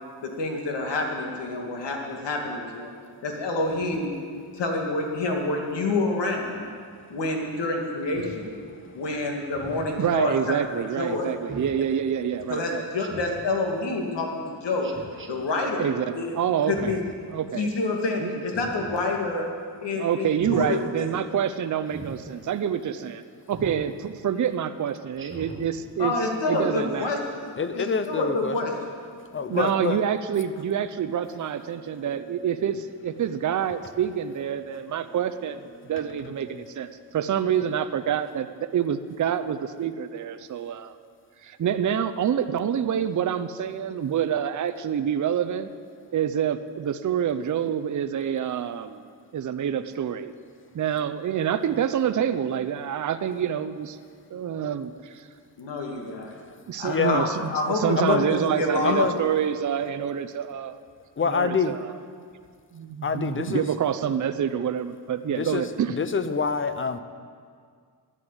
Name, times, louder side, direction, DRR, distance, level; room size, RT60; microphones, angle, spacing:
voice 1, 0.2-2.9 3.2-4.1 4.5-6.7 7.1-8.6 8.9-10.6 11.0-11.3 12.5-14.9 15.3-16.4 16.7-17.0 17.5-19.5 19.8-21.2 26.0-28.7 55.6-56.3 56.8-59.3, left 2 dB, 80° left, 1 dB, 2.3 m, -28 dB
Speech synthesizer, 8.1-8.4 9.5-10.0 11.5-11.8 13.0-13.5 14.8-15.3 16.6-17.1 18.4-18.9 20.3-20.7 21.9-22.2 23.5-23.9 25.2-25.7, right 2 dB, 30° right, 1.5 m, -39 dB
voice 2, 10.0-12.8 15.8-17.0 17.3-17.7 18.2-18.4 19.9-23.2 23.5-26.1 26.5-27.1 29.5-35.6 35.9-41.0 41.4-45.7 46.1-49.1 49.3-50.3 50.7-54.0 54.3-55.2 56.7-60.8 61.2-61.8 62.7-66.0, right 9 dB, 45° right, 9 dB, 0.6 m, -27 dB
voice 3, 27.6-28.6 29.3-30.0 56.9-57.3 58.0-58.2 58.8-59.1 61.2-61.8 63.0-63.7 65.3-67.0, left 5 dB, 30° left, 11 dB, 0.7 m, -26 dB
13.0 x 10.0 x 8.0 m, 2.1 s
wide cardioid pair, 125°, 42 cm